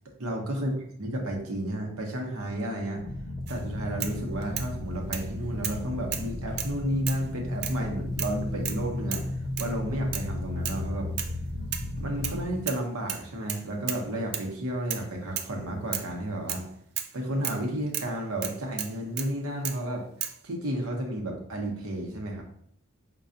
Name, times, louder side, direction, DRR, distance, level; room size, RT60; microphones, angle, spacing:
voice 1, 0.2-3.0 3.5-9.2 9.6-11.1 12.0-16.7 17.1-20.0 20.4-22.4, right 1 dB, 70° right, 1 dB, 0.8 m, -32 dB
sound 1, 2.9-12.5, left 1 dB, 30° left, 0.4 m, -34 dB
sound 2, 3.5-3.6 4.0-4.7 5.1-5.3 5.6-5.8 6.1-6.7 7.1-7.3 7.6-7.8 8.2-8.4 8.6-8.8 9.1-9.3 9.6-9.7 10.1-10.3 10.6-10.8 11.2-11.4 11.7-12.4 12.7-12.8 13.1-14.0 14.3-14.5 14.9-15.1 15.4-15.5 15.9-16.1 16.5-16.7 17.0-17.1 17.4-17.6 17.9-18.1 18.4-19.3 19.6-19.8 20.2-20.4, right 10 dB, 45° right, 0.3 m, -34 dB
5.4 x 2.2 x 2.5 m, 0.66 s
head